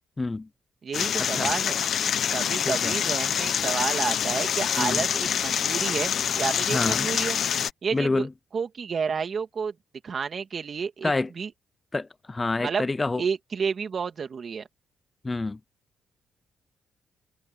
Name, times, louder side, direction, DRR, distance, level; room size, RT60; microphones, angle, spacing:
voice 1, 0.2-0.5 1.2-1.5 2.7-2.9 4.8-5.0 6.7-7.1 7.9-8.3 11.0-11.3 11.9-13.2 15.2-15.6, left 3 dB, 20° left, 0.4 m, -27 dB
voice 2, 0.8-1.8 2.3-7.4 7.8-8.3 8.5-9.7 10.0-11.5 12.6-12.8 13.2-14.6, right 6 dB, 45° right, 2.5 m, -30 dB
sound 1, 0.9-7.7, left 8 dB, 60° left, 0.9 m, -26 dB
cardioid pair, 90°, 0 cm